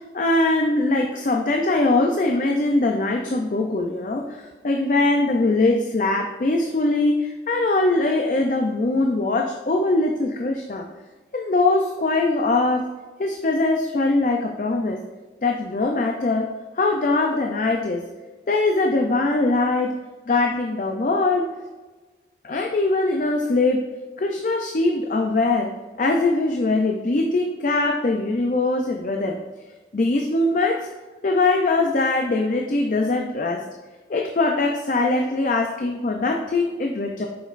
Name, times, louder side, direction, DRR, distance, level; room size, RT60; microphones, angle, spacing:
voice 1, 0.1-4.4 4.6-10.8 11.3-12.9 13.2-15.0 15.4-16.5 16.8-18.0 18.5-19.9 20.3-21.5 22.4-23.8 24.2-25.7 26.0-29.4 29.9-30.8 31.2-33.6 34.1-37.3, left 2 dB, 45° left, 2 dB, 0.4 m, -21 dB
7.8 x 5.1 x 2.5 m, 1.3 s
head